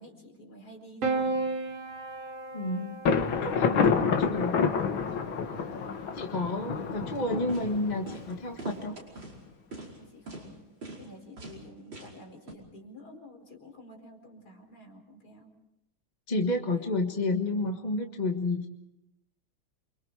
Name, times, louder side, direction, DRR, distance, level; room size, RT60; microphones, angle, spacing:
voice 1, 0.0-1.3 5.5-5.9 10.0-10.6 11.0-15.5 16.7-17.0, equal, 50° left, 1 dB, 5.2 m, -50 dB
Piano, 1.0-5.5 6.7-7.4, right 3 dB, 80° right, 3.5 m, -35 dB
voice 2, 2.5-3.0 3.4-4.6 6.1-8.9 16.3-18.7, left 2 dB, 25° left, 3 dB, 1.4 m, -30 dB
Thunder, 3.0-8.7, left 5 dB, 75° left, 2.2 m, -28 dB
sound 1, 7.1-7.2 7.5-7.7 8.1-8.3 8.6-9.3 9.7-10.0 10.3-10.4 10.8-11.1 11.4-11.6 11.9-12.2 12.5-12.6, right 2 dB, 65° right, 5.9 m, -42 dB
29.0 x 25.5 x 4.8 m, 0.85 s
omnidirectional pair, 2.2 m